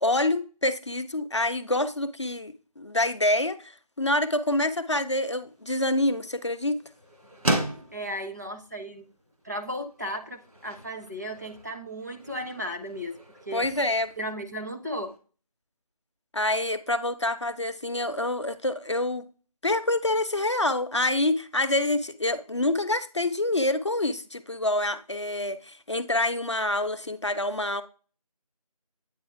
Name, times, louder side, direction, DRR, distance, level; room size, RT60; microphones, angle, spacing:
voice 1, 0.0-6.8 13.5-14.1 16.3-19.2 19.6-27.8, left 1 dB, 50° left, 0.4 m, -26 dB
sound 1, 5.4-15.2, right 1 dB, 70° right, 1.8 m, -37 dB
voice 2, 7.9-9.1 9.4-13.1 13.5-13.7 14.2-15.1, equal, 30° right, 0.5 m, -35 dB
8.8 x 3.0 x 4.6 m
figure-of-eight pair, 165°, 19 cm